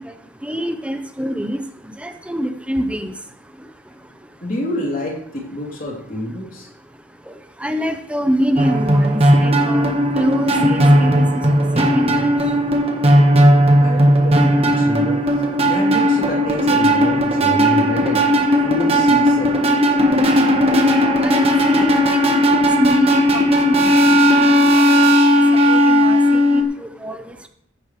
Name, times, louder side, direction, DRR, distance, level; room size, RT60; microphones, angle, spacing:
voice 1, 0.4-1.6 2.0-3.1 7.6-12.3 21.2-24.3 24.7-24.8 25.5-27.3, equal, 5° right, 7 dB, 0.8 m, -25 dB
voice 2, 4.4-6.7 13.8-15.2 15.6-18.2 18.6-19.6, left 1 dB, 45° left, -1 dB, 3.2 m, -27 dB
sound 1, 8.6-26.6, equal, 30° right, 1.5 m, -15 dB
15.0 x 10.5 x 3.3 m, 0.69 s
head